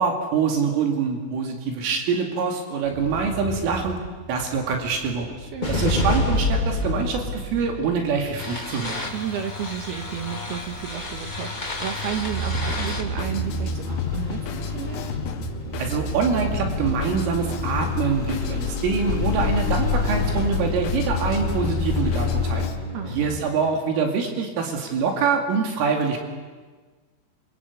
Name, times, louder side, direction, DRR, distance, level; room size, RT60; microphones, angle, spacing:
voice 1, 0.0-4.0 4.3-5.3 5.7-9.0 15.8-22.7 23.1-26.2, right 5 dB, 80° right, 2 dB, 5.0 m, -25 dB
sound 1, 2.9-22.7, left 3 dB, 35° left, 5.7 m, -30 dB
voice 2, 5.3-5.8 9.1-15.0 22.8-23.1, right 8 dB, 65° right, 4 dB, 3.1 m, -32 dB
sound 2, 5.6-23.4, left 1 dB, 10° left, 2.2 m, -31 dB
Drum kit, 12.5-22.8, left 8 dB, 65° left, 3.4 m, -35 dB
27.5 x 25.5 x 8.3 m, 1.4 s
omnidirectional pair, 5.8 m